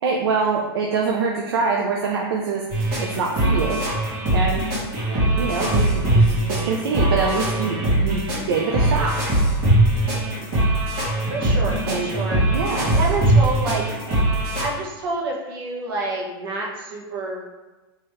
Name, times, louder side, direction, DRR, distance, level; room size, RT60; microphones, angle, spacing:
voice 1, 0.0-3.8 4.3-4.7 5.4-8.2 8.5-9.1 11.9-12.1 12.5-12.9, right 5 dB, 85° right, -1 dB, 0.6 m, -24 dB
sound 1, 2.7-14.7, right 1 dB, 35° right, 1.5 m, -21 dB
voice 2, 11.3-12.4 12.9-13.8 14.6-17.4, right 3 dB, 70° right, -2 dB, 1.2 m, -28 dB
4.6 x 3.0 x 3.2 m, 1.2 s
supercardioid pair, 170°, 13 cm